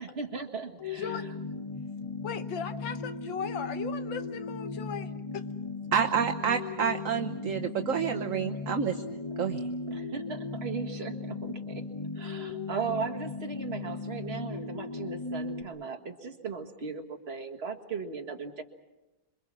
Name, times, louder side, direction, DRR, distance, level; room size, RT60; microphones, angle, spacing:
voice 1, 0.0-1.3 9.9-18.6, right 5 dB, 35° right, 3 dB, 1.9 m, -37 dB
sound 1, 0.8-15.6, left 3 dB, 25° left, 0.7 m, -37 dB
voice 2, 1.0-1.3 2.2-5.5, left 7 dB, 75° left, 10 dB, 1.7 m, -37 dB
voice 3, 5.9-9.0 9.4-9.7, right 7 dB, 50° right, 6 dB, 1.1 m, -28 dB
27.0 x 23.5 x 6.2 m, 1.0 s
omnidirectional pair, 2.1 m